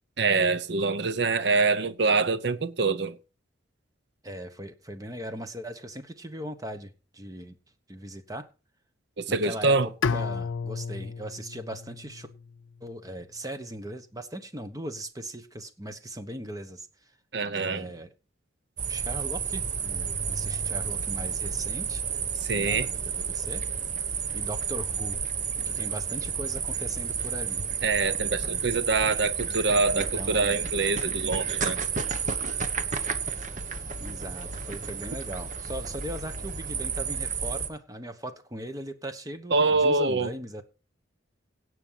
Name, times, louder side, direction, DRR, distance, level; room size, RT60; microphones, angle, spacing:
voice 1, 0.2-3.2 9.2-9.9 17.3-17.9 22.4-22.9 27.8-31.8 39.5-40.3, right 3 dB, 60° right, 0.8 m, -25 dB
voice 2, 4.2-7.6 7.9-8.4 9.3-12.3 12.8-17.1 17.5-18.1 18.9-22.0 22.6-23.6 24.3-25.2 25.7-27.6 29.9-30.5 34.0-40.6, right 1 dB, 20° right, 1.1 m, -39 dB
Bowed string instrument, 10.0-13.0, left 5 dB, 85° left, 0.5 m, -33 dB
sound 1, 18.8-37.7, right 6 dB, 40° right, 1.2 m, -31 dB
17.5 x 6.2 x 5.7 m
head